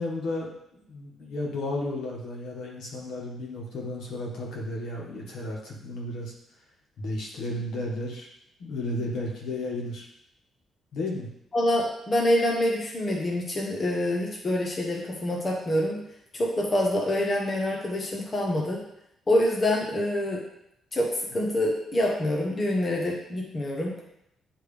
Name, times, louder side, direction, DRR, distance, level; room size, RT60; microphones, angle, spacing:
voice 1, 0.0-6.3 7.0-8.3 8.6-10.0 10.9-11.3, left 1 dB, 75° left, -3 dB, 1.7 m, -33 dB
voice 2, 11.5-16.0 16.3-18.8 19.3-20.4 20.9-23.9, left 1 dB, 25° left, -2 dB, 0.9 m, -26 dB
9.4 x 3.3 x 3.4 m, 0.78 s
cardioid pair, 160°, 0 cm